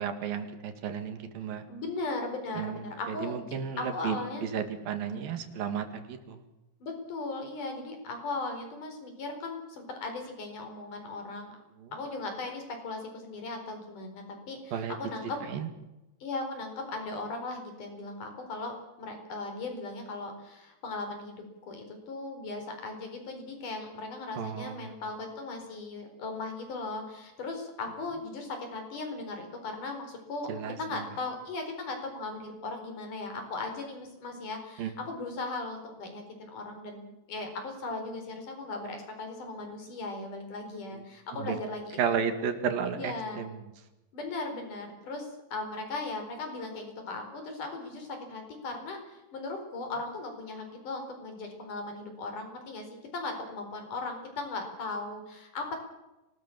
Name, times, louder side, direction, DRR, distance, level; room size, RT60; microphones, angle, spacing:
voice 1, 0.0-1.7 2.6-2.8 3.1-6.5 11.8-11.9 14.7-14.9 15.4-15.7 24.4-24.9 30.5-31.0 34.8-34.9 40.9-41.0 41.3-41.6 42.0-43.7, right 7 dB, 85° right, 8 dB, 3.9 m, -33 dB
voice 2, 1.7-3.5 3.8-4.5 6.8-11.5 11.9-15.4 16.2-18.7 19.0-30.5 30.8-42.2 43.0-43.4 44.1-52.9 53.1-55.8, left 3 dB, 65° left, 5 dB, 6.0 m, -38 dB
25.0 x 19.5 x 7.3 m, 0.99 s
omnidirectional pair, 4.0 m